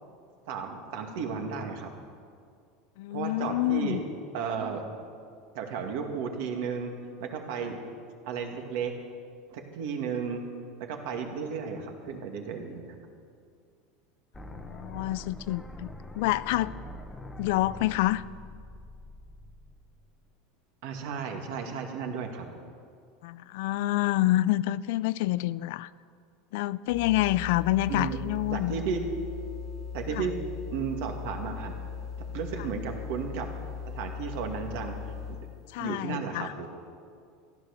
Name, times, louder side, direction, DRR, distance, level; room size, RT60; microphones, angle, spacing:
voice 1, 0.5-1.9 3.1-4.0 4.3-4.8 5.5-6.9 7.2-7.8 8.3-8.9 9.5-10.4 10.8-13.0 20.8-22.5 27.9-28.2 28.5-29.0 29.9-30.3 30.7-31.7 32.3-33.5 33.9-34.9 35.3-35.4 35.8-36.7, right 6 dB, 65° right, 3 dB, 2.1 m, -34 dB
voice 2, 3.0-4.0 14.4-15.9 16.1-16.7 17.4-18.2 23.2-25.9 26.5-28.8 30.1-30.3 35.7-36.5, left 16 dB, 70° left, 18 dB, 0.4 m, -27 dB
sound 1, 14.3-20.3, left 1 dB, 10° left, 0.9 m, -44 dB
sound 2, 26.9-35.6, left 6 dB, 30° left, 1.0 m, -39 dB
15.0 x 11.0 x 6.6 m, 2.3 s
supercardioid pair, 150°, 0 cm